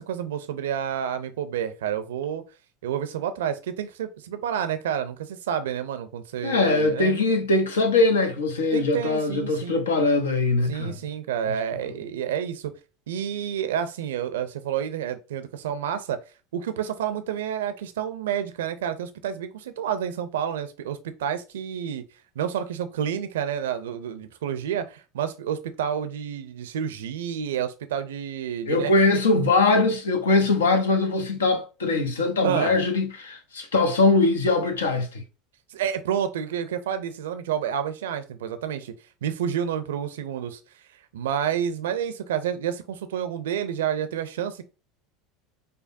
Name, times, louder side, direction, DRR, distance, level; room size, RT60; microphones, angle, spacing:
voice 1, 0.0-2.4 2.8-7.4 8.7-9.9 10.7-12.7 13.1-16.2 16.5-22.0 22.4-28.9 32.4-32.8 35.7-38.9 39.2-40.6 41.1-44.6, right 9 dB, 75° right, 0.4 m, -29 dB
voice 2, 6.4-11.0 28.7-35.2, left 3 dB, 85° left, 0.8 m, -22 dB
5.1 x 2.2 x 2.6 m
hypercardioid pair, 80°, 0 cm